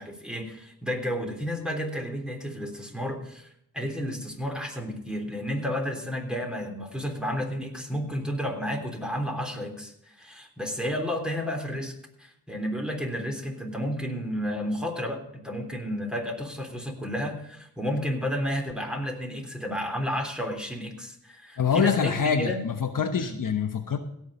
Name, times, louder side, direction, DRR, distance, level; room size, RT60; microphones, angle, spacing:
voice 1, 0.0-3.5 3.7-11.9 12.2-22.6 23.1-23.3, equal, ahead, 2 dB, 3.4 m, -31 dB
voice 2, 21.6-24.0, left 6 dB, 60° left, 7 dB, 1.1 m, -25 dB
17.0 x 6.4 x 4.9 m, 0.73 s
cardioid pair, 55°, 37 cm